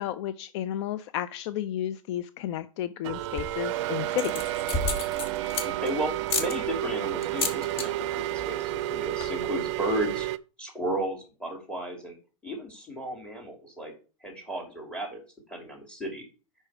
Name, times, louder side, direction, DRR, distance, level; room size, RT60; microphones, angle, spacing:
voice 1, 0.0-4.4, left 12 dB, 55° left, 14 dB, 0.4 m, -32 dB
sound 1, 3.0-10.4, right 14 dB, 55° right, 0.5 m, -31 dB
sound 2, 3.1-3.6 4.1-5.9 6.3-6.5 7.2-7.9 8.2-8.5 8.7-8.8 9.0-9.5, left 3 dB, 30° left, 1.4 m, -31 dB
voice 2, 5.6-10.3 10.6-12.1 12.4-13.9 14.2-15.2 15.5-16.3, right 1 dB, 5° left, 1 dB, 2.9 m, -34 dB
5.4 x 4.8 x 4.8 m, 0.35 s
hypercardioid pair, 105°, 18 cm